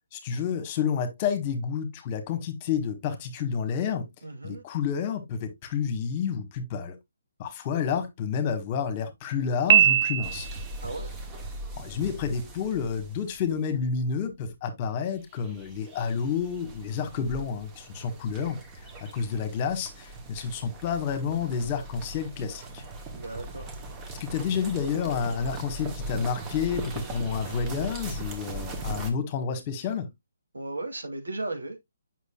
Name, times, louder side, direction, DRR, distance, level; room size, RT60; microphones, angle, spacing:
voice 1, 0.1-4.1 4.4-7.0 7.4-10.5 11.8-18.6 19.0-22.8 24.2-30.1, left 6 dB, 30° left, 1.4 m, -30 dB
voice 2, 4.2-4.6 10.8-11.1 23.1-23.7 30.5-31.8, right 2 dB, 85° right, 2.7 m, -35 dB
Piano, 9.7-10.8, right 10 dB, 45° right, 0.3 m, -20 dB
sound 1, 10.2-13.5 15.3-29.1, right 2 dB, 15° right, 1.3 m, -39 dB
8.2 x 6.2 x 2.4 m
figure-of-eight pair, 145°, 0 cm